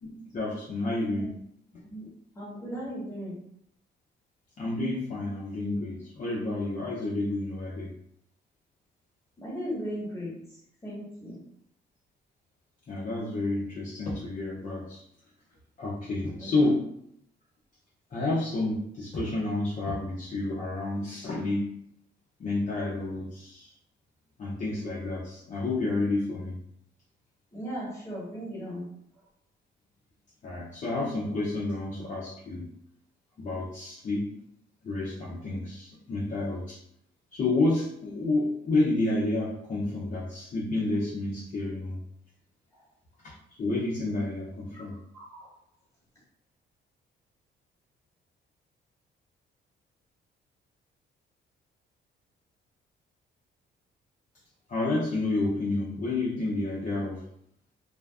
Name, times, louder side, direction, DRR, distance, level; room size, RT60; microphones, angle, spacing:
voice 1, 0.0-1.3 4.6-7.9 12.9-15.0 15.8-16.9 18.1-21.7 22.4-23.7 24.4-26.6 30.4-32.7 33.4-34.3 34.8-36.8 37.3-42.0 43.2-43.3 43.6-45.0 54.7-57.2, left 2 dB, 40° left, -6 dB, 0.6 m, -30 dB
voice 2, 2.3-3.4 9.4-10.3 10.8-11.4 16.4-16.5 27.5-28.9 44.7-44.8 45.1-45.5, equal, 15° left, -5 dB, 1.3 m, -37 dB
2.5 x 2.2 x 2.3 m, 0.72 s
cardioid pair, 90°, 20 cm